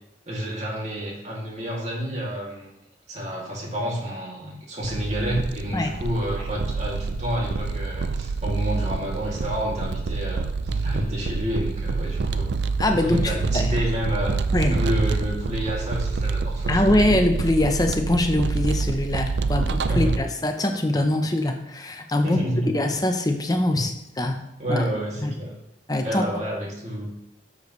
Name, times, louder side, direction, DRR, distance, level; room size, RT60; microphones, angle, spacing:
voice 1, 0.3-2.7 3.1-12.5 12.9-14.3 14.7-17.1 19.7-20.2 22.2-22.7 23.7-23.8 24.6-25.5 26.0-27.1, equal, 35° right, -3 dB, 2.6 m, -29 dB
sound 1, 4.8-20.2, right 4 dB, 65° right, 0.5 m, -27 dB
voice 2, 12.8-13.7 14.5-14.8 16.7-22.4 22.7-24.4 24.7-24.8 25.2-25.4 25.9-26.3, left 1 dB, 20° left, 5 dB, 0.7 m, -23 dB
12.0 x 6.8 x 3.2 m, 0.89 s
head